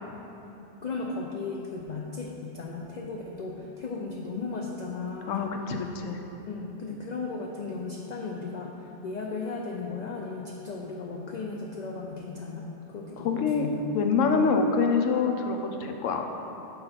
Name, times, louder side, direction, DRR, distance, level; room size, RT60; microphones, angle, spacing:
voice 1, 0.4-5.5 6.5-13.8, left 4 dB, 65° left, -1 dB, 0.4 m, -36 dB
voice 2, 5.3-6.2 13.2-13.7 13.9-16.2, left 5 dB, 90° left, 4 dB, 1.0 m, -25 dB
5.6 x 4.0 x 5.6 m, 3.0 s
omnidirectional pair, 1.3 m